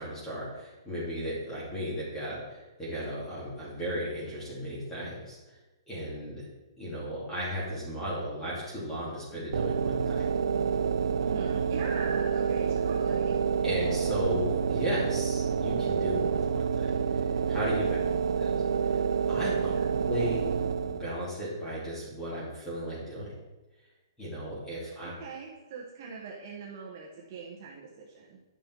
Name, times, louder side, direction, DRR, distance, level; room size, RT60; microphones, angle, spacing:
voice 1, 0.0-5.4 5.9-6.4 6.8-10.3 13.6-16.7 17.1-18.0 18.4-18.5 18.9-19.0 19.3-19.7 20.1-20.5 20.8-23.4 24.2-25.1, equal, 10° left, -7 dB, 2.9 m, -35 dB
sound 1, 9.5-21.2, right 6 dB, 80° right, 0.6 m, -28 dB
voice 2, 11.2-13.4 18.0-18.2 19.6-19.9 25.0-28.4, right 5 dB, 30° right, -3 dB, 1.2 m, -42 dB
11.0 x 5.4 x 4.6 m, 1.1 s
hypercardioid pair, 175°, 3 cm